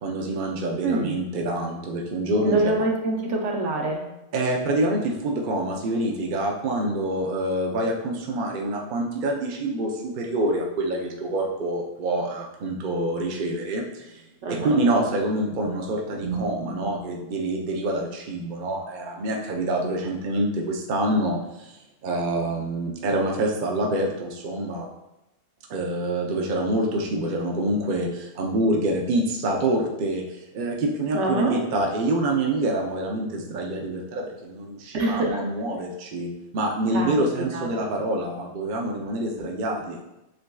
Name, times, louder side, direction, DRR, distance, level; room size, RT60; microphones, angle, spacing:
voice 1, 0.0-2.6 4.3-21.7 22.0-24.9 25.7-40.0, right 1 dB, 50° right, 0 dB, 0.7 m, -26 dB
voice 2, 0.8-1.2 2.4-4.1 14.4-14.8 15.5-15.8 16.1-17.1 31.1-31.6 34.9-35.4 36.9-37.2 37.5-37.7, right 2 dB, 70° right, 1 dB, 1.0 m, -26 dB
7.5 x 2.6 x 2.3 m, 0.94 s
omnidirectional pair, 1.3 m